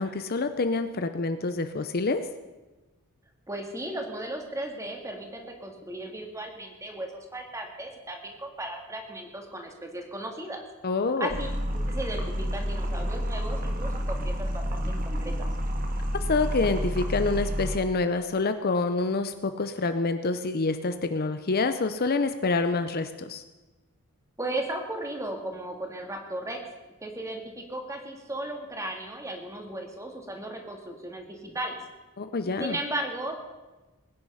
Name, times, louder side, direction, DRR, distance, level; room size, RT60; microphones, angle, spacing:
voice 1, 0.0-2.3 10.8-11.3 16.1-23.4 32.2-32.8, left 3 dB, 45° left, 9 dB, 0.7 m, -27 dB
voice 2, 3.5-10.6 11.2-11.5 11.9-15.5 24.4-26.7 27.0-31.8 32.6-33.4, right 1 dB, 15° right, 2 dB, 2.1 m, -36 dB
sound 1, 11.3-17.8, equal, 40° right, 1.7 m, -29 dB
20.5 x 9.6 x 5.6 m, 1.1 s
head